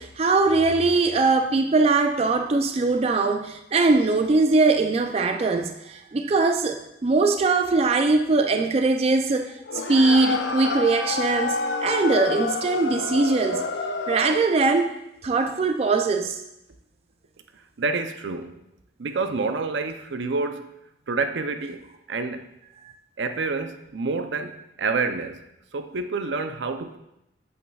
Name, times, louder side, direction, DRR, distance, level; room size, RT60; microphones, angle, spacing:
voice 1, 0.0-9.5 9.9-13.7 14.1-14.9 15.2-16.4, right 3 dB, 35° right, 6 dB, 0.4 m, -21 dB
sound 1, 9.7-14.5, left 4 dB, 80° left, 0.6 m, -28 dB
voice 2, 17.8-18.6 19.0-20.7 21.1-22.5 23.2-25.4 25.7-27.0, right 4 dB, 80° right, 8 dB, 0.6 m, -28 dB
8.2 x 7.7 x 2.3 m, 0.85 s
head